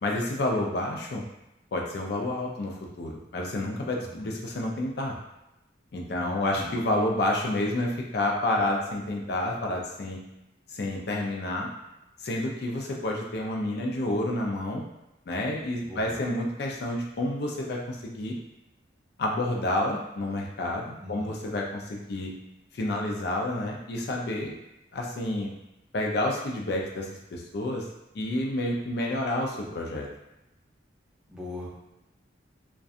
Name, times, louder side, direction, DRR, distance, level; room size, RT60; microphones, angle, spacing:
voice 1, 0.0-1.2 1.7-5.2 5.9-10.2 10.7-11.7 12.2-14.8 15.3-18.3 19.2-22.3 22.7-24.6 24.9-25.5 25.9-27.9 28.1-30.1, left 1 dB, 55° left, -1 dB, 0.4 m, -29 dB
voice 2, 6.2-6.7 15.8-16.1 21.0-21.3 31.3-31.8, left 1 dB, 5° right, -8 dB, 0.5 m, -40 dB
2.6 x 2.2 x 2.4 m, 0.90 s
head